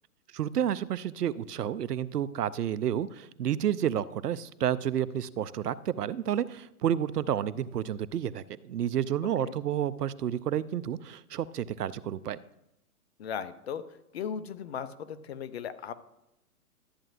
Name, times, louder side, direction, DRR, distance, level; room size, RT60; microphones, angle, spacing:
voice 1, 0.3-12.4, right 10 dB, 85° right, 17 dB, 0.6 m, -30 dB
voice 2, 13.2-13.8 14.1-15.9, left 7 dB, 45° left, 13 dB, 0.7 m, -37 dB
12.5 x 8.8 x 2.5 m, 0.87 s
hypercardioid pair, 140°, 45 cm